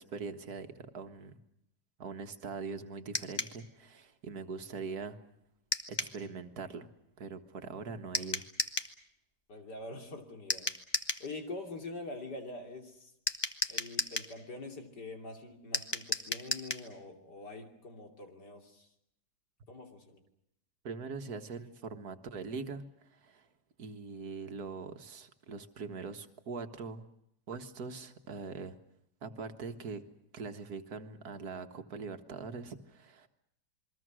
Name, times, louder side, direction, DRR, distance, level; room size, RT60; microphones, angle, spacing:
voice 1, 0.0-1.4 2.0-5.2 5.9-6.9 7.2-8.4 20.8-23.5 23.8-27.1 27.5-28.8 29.2-30.0 30.3-33.3, right 4 dB, 65° right, 8 dB, 1.9 m, -42 dB
sound 1, 3.1-3.6 5.7-6.2 8.1-8.9 10.5-11.3 13.3-14.3 15.7-16.9, left 2 dB, 20° left, 1.0 m, -34 dB
voice 2, 9.5-10.7 11.2-13.1 13.7-18.9 19.7-20.2, left 2 dB, 80° left, 3 dB, 3.6 m, -44 dB
28.0 x 22.5 x 6.3 m, 0.77 s
omnidirectional pair, 1.8 m